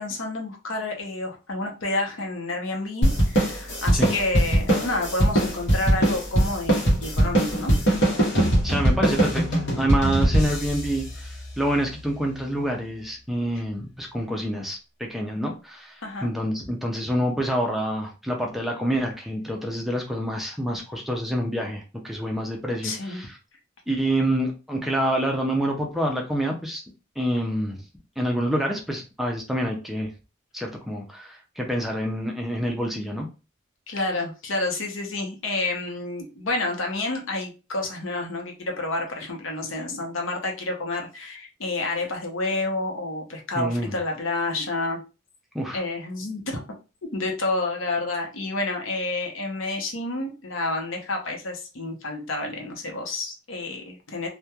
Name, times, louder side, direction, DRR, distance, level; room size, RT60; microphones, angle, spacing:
voice 1, 0.0-7.7 16.0-16.3 22.8-23.2 33.9-45.0 45.7-46.6 47.1-54.3, left 2 dB, 75° left, 2 dB, 0.7 m, -29 dB
sound 1, 3.0-11.8, right 1 dB, 60° left, 0.9 m, -22 dB
voice 2, 8.6-9.4 9.8-23.4 23.9-26.8 27.2-27.8 28.2-30.1 30.5-33.3 43.6-43.9 45.5-45.8, equal, ahead, 0 dB, 0.4 m, -27 dB
2.9 x 2.1 x 2.2 m, 0.31 s
head